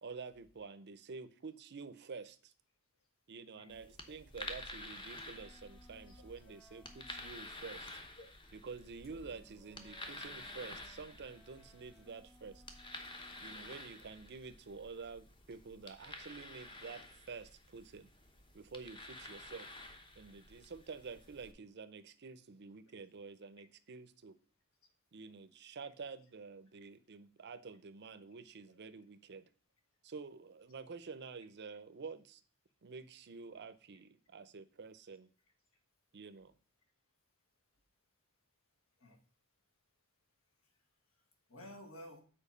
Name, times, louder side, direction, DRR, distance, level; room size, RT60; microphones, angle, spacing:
voice 1, 0.0-2.5 3.3-7.9 8.5-12.6 13.4-18.1 18.5-19.7 20.2-24.4 25.1-29.5 30.0-32.4 32.8-35.3 36.1-36.5, right 4 dB, 50° right, 12 dB, 0.6 m, -49 dB
voice 2, 3.6-3.9 6.1-6.2 8.2-8.3 35.7-35.8 39.0-39.3 40.5-42.2, left 1 dB, 65° left, 3 dB, 1.7 m, -55 dB
sound 1, 3.7-21.5, left 1 dB, 20° left, 1.0 m, -51 dB
sound 2, 5.1-13.6, left 1 dB, ahead, 0.4 m, -65 dB
7.1 x 4.5 x 5.5 m, 0.40 s
head